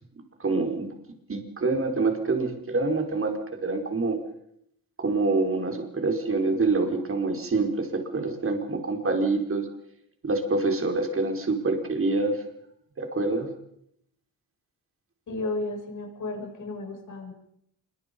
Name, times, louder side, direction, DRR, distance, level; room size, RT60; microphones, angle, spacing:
voice 1, 0.4-0.9 1.3-3.3 3.6-4.2 5.0-9.7 10.2-12.4 13.0-13.5, right 3 dB, 40° right, 4 dB, 4.9 m, -26 dB
voice 2, 15.3-17.3, left 2 dB, 55° left, 2 dB, 7.8 m, -33 dB
26.5 x 24.0 x 5.4 m, 0.73 s
cardioid pair, 100°, 35 cm